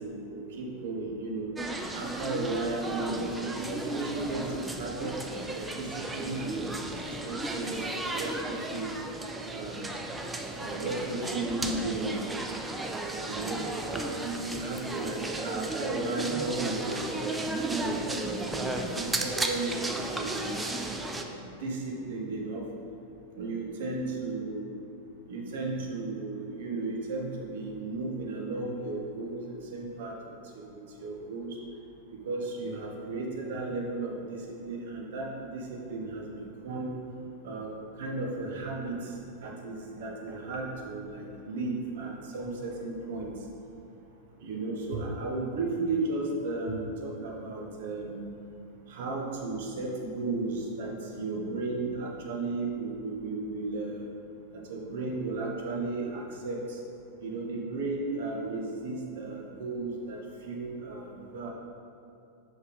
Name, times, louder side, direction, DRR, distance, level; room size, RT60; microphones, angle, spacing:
voice 1, 0.0-1.5 1.9-8.9 9.5-10.0 10.6-12.2 13.3-13.6 13.9-20.8 21.3-22.6 23.4-24.7 25.3-30.2 30.5-31.6 32.1-37.0 37.4-37.7 38.0-39.1 39.4-43.4 44.4-48.2 48.9-54.0 54.5-56.8 57.2-61.5, right 3 dB, 55° right, -1 dB, 1.1 m, -34 dB
sound 1, 1.6-21.2, right 2 dB, 10° right, 0.6 m, -34 dB
5.5 x 5.5 x 5.4 m, 2.8 s
figure-of-eight pair, 90°, 0 cm